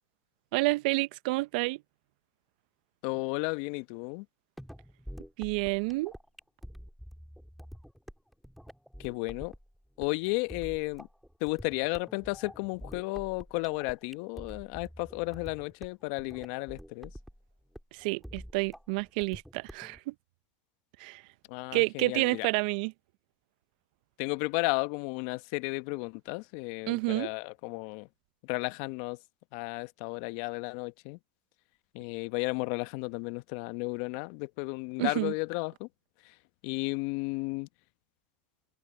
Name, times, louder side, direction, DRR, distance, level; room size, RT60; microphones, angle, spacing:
voice 1, 0.5-1.8 5.4-6.1 17.9-20.1 21.0-21.2 21.7-22.9 26.9-27.3 35.0-35.3, right 24 dB, 65° right, 0.8 m, -29 dB
voice 2, 3.0-4.2 9.0-9.5 10.0-11.1 11.4-17.1 21.5-22.5 24.2-28.1 28.4-29.2 29.5-31.2 31.9-35.9 36.2-36.3 36.6-37.7, left 26 dB, 65° left, 1.1 m, -33 dB
sound 1, 4.6-20.0, equal, ahead, 3.2 m, -47 dB
hypercardioid pair, 90°, 5 cm